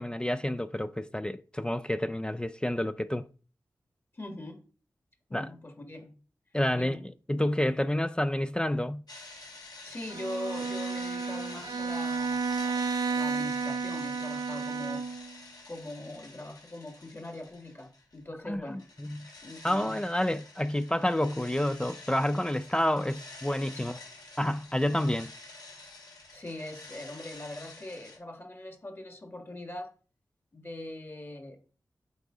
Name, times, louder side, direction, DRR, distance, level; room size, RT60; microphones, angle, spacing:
voice 1, 0.0-3.3 5.3-5.5 6.5-7.0 7.3-9.0 18.5-19.2 19.6-24.0 24.4-25.3, left 1 dB, 15° left, 0.4 m, -29 dB
voice 2, 4.1-4.6 5.3-6.1 6.7-7.0 9.8-15.3 15.7-18.8 19.4-20.0 23.8-23.9 26.3-29.9 30.5-31.6, left 1 dB, 35° left, 1.6 m, -42 dB
sound 1, 9.1-18.2 18.5-28.2, left 3 dB, 65° left, 2.5 m, -48 dB
Bowed string instrument, 10.1-15.4, right 4 dB, 65° right, 0.4 m, -32 dB
8.2 x 3.4 x 4.8 m
cardioid pair, 65°, 7 cm